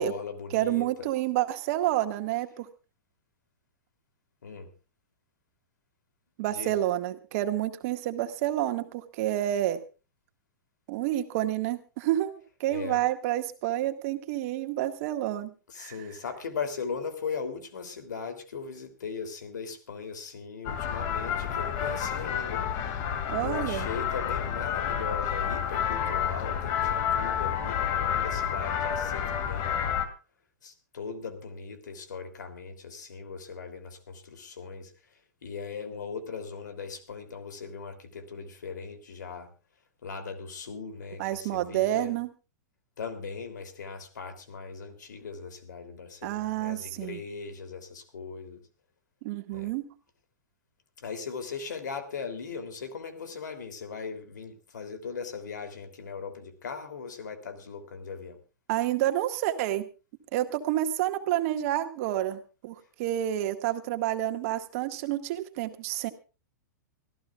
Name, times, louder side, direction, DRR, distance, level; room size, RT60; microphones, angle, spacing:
voice 1, 0.0-1.1 4.4-4.7 6.5-6.7 12.7-13.0 15.7-22.6 23.4-30.0 30.6-34.9 35.4-39.5 40.0-42.2 43.0-48.6 49.5-49.7 51.0-58.4, left 5 dB, 75° left, 7 dB, 3.2 m, -39 dB
voice 2, 0.5-2.7 6.4-9.8 10.9-16.0 23.3-23.9 41.2-42.3 46.2-47.2 49.2-49.8 58.7-59.9 60.3-66.1, right 13 dB, 50° right, 7 dB, 1.8 m, -29 dB
sound 1, 20.6-30.1, left 8 dB, 45° left, 2.4 m, -29 dB
25.5 x 14.5 x 2.4 m, 0.33 s
hypercardioid pair, 115°, 10 cm